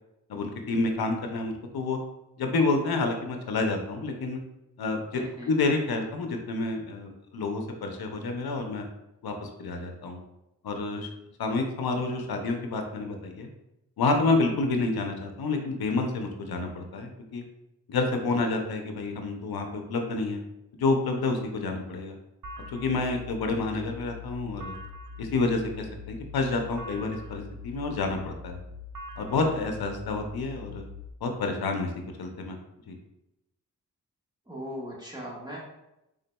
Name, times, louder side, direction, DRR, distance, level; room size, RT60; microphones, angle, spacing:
voice 1, 0.3-2.0 2.4-4.4 4.8-8.8 9.2-10.2 10.6-11.1 11.4-13.5 14.0-17.4 17.9-20.4 20.7-22.2 22.7-24.7 25.2-28.6 29.2-30.8 31.2-31.9 32.2-32.6 32.9-33.0, left 3 dB, 80° left, 4 dB, 0.6 m, -29 dB
voice 2, 5.1-5.5 34.5-35.6, equal, 10° right, -5 dB, 1.3 m, -38 dB
sound 1, 22.4-31.1, left 3 dB, 60° right, 0.5 m, -43 dB
3.8 x 3.6 x 2.2 m, 0.90 s
cardioid pair, 40°, 36 cm